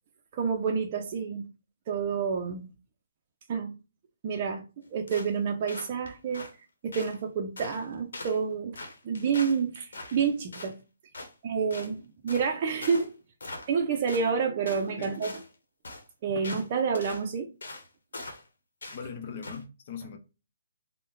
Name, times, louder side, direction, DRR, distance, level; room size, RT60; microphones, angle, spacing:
voice 1, 0.3-1.5 1.9-2.7 3.5-3.7 4.2-6.5 6.8-8.8 9.0-10.8 11.4-13.1 13.7-15.4 16.2-17.5, right 6 dB, 35° right, 0.4 m, -29 dB
sound 1, 5.1-5.4 5.7-6.5 6.9-7.2 7.6-7.9 8.1-8.4 8.7-10.7 11.1-11.3 11.7-11.9 12.3-12.5 12.8-13.1 13.4-13.8 14.1-14.3 14.7-15.5 15.8-16.0 16.4-16.7 16.9-17.2 17.6-17.9 18.1-18.5 18.8-19.0 19.4-19.6, left 2 dB, 80° left, 0.9 m, -42 dB
voice 2, 18.9-20.2, left 6 dB, 45° left, 0.7 m, -40 dB
3.4 x 2.1 x 2.9 m
hypercardioid pair, 155°, 0 cm